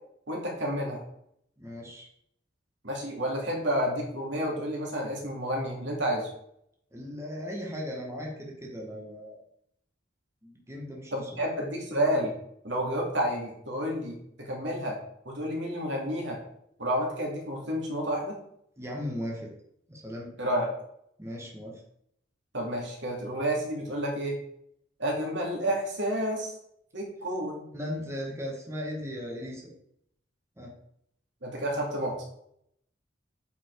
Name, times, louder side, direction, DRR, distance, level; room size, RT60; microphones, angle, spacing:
voice 1, 0.3-1.0 2.8-6.3 11.1-12.3 12.6-15.0 15.2-16.4 16.8-18.4 20.4-20.7 22.5-24.4 25.0-26.5 26.9-27.7 31.4-32.2, equal, 70° right, -1 dB, 2.8 m, -30 dB
voice 2, 1.6-2.1 6.9-9.4 10.4-11.4 18.8-19.5 19.9-20.3 21.2-21.8 27.7-29.7 30.6-30.7, equal, 15° right, -2 dB, 1.9 m, -37 dB
8.3 x 6.0 x 4.9 m, 0.72 s
head